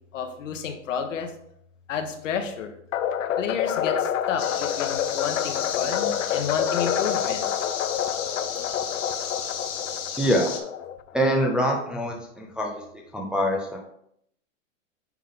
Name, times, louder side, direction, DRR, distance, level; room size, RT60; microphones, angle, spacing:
voice 1, 0.1-1.3 1.9-2.7 3.4-7.5, left 7 dB, 70° left, 6 dB, 1.3 m, -31 dB
sound 1, 2.9-11.2, left 9 dB, 90° left, 0.6 m, -28 dB
sound 2, 4.4-10.6, left 8 dB, 50° left, 1.4 m, -33 dB
voice 2, 10.2-10.5 11.1-13.8, equal, ahead, -1 dB, 0.4 m, -25 dB
9.5 x 3.6 x 3.7 m, 0.71 s
hypercardioid pair, 135°, 38 cm